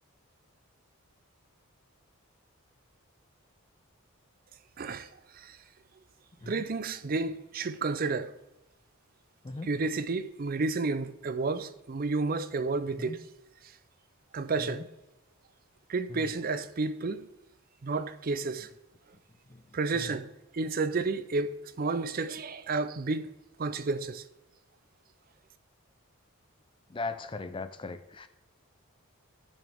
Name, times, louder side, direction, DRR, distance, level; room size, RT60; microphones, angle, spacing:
voice 1, 4.8-5.6 6.5-8.3 9.6-13.2 14.3-14.9 15.9-17.3 17.8-18.7 19.7-20.3 20.5-23.3 23.6-24.2, right 3 dB, 40° right, 0.4 m, -31 dB
voice 2, 26.9-28.3, left 3 dB, 20° left, 0.4 m, -38 dB
14.5 x 6.4 x 3.5 m
head